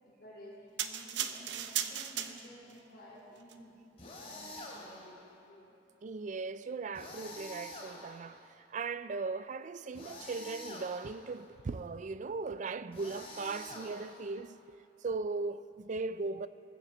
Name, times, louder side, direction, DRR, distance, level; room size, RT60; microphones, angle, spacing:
voice 1, 0.0-5.2 5.5-5.7, equal, 55° left, 3.7 m, -53 dB
sound 1, 0.8-2.7 3.4-3.5, right 9 dB, 70° right, 0.7 m, -36 dB
sound 2, 4.0-5.1 6.9-8.4 9.9-11.2 12.9-14.3, left 2 dB, 35° left, 2.7 m, -47 dB
voice 2, 6.0-16.5, right 4 dB, 40° right, 0.4 m, -38 dB
19.0 x 7.2 x 7.4 m
head